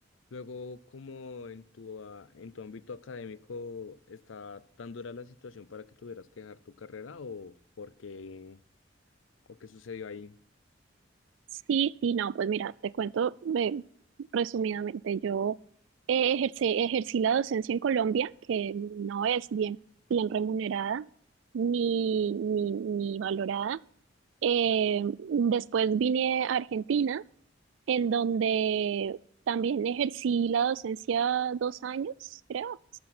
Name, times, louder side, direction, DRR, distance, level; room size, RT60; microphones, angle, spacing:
voice 1, 0.3-8.6 9.5-10.4, left 4 dB, 90° left, 0.6 m, -43 dB
voice 2, 11.7-13.8 14.3-15.6 16.1-19.8 20.1-21.1 21.5-23.8 24.4-27.2 27.9-29.2 29.5-33.0, right 7 dB, 75° right, 0.3 m, -28 dB
12.5 x 8.7 x 4.3 m
head